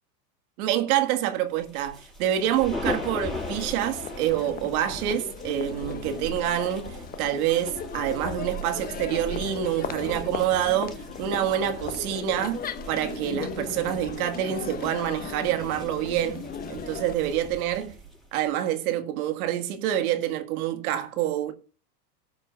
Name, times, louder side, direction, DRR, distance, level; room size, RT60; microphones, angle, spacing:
voice 1, 0.6-12.6 12.9-18.0 18.3-21.5, right 11 dB, 60° right, 1.7 m, -27 dB
sound 1, 1.6-18.5, equal, ahead, 5.9 m, -40 dB
Crowd, 3.0-17.1, left 7 dB, 20° left, 0.7 m, -37 dB
17.5 x 7.3 x 2.4 m
hypercardioid pair, 105°, 49 cm